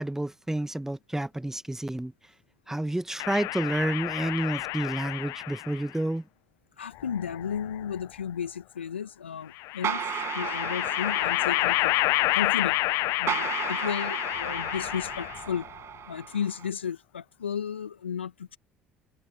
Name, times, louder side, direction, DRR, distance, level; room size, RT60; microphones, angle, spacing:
voice 1, 0.0-2.1 2.7-6.2, right 1 dB, 5° right, 1.0 m, -30 dB
sound 1, 3.2-5.8 7.0-8.0 9.6-15.6, left 21 dB, 60° left, 0.5 m, -29 dB
voice 2, 6.8-10.1 10.3-11.9 12.3-12.8 13.2-15.7 16.1-18.6, left 8 dB, 85° left, 1.5 m, -34 dB
sound 2, 9.8-16.7, right 9 dB, 45° right, 6.3 m, -35 dB
open air
figure-of-eight pair, 55°, 6 cm